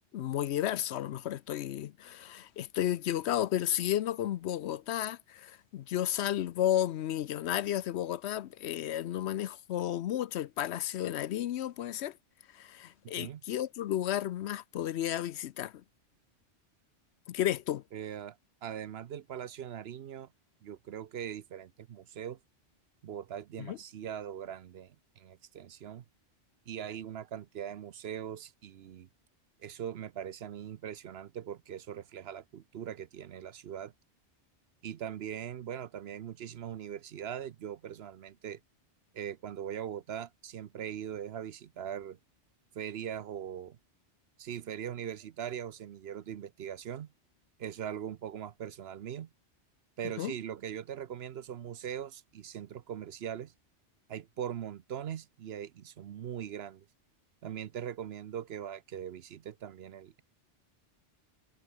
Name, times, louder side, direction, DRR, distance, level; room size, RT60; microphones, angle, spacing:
voice 1, 0.1-12.2 12.5-15.8 17.3-17.8 23.6-23.8 50.2-50.3, left 12 dB, 70° left, 0.8 m, -32 dB
voice 2, 17.9-20.3 20.6-22.4 23.0-26.0 26.7-29.1 29.6-33.9 34.8-38.6 39.1-42.2 42.7-43.8 44.4-47.1 47.6-49.3 50.0-53.5 54.1-56.9 57.4-60.2, right 9 dB, 65° right, 0.9 m, -41 dB
omnidirectional pair, 1.2 m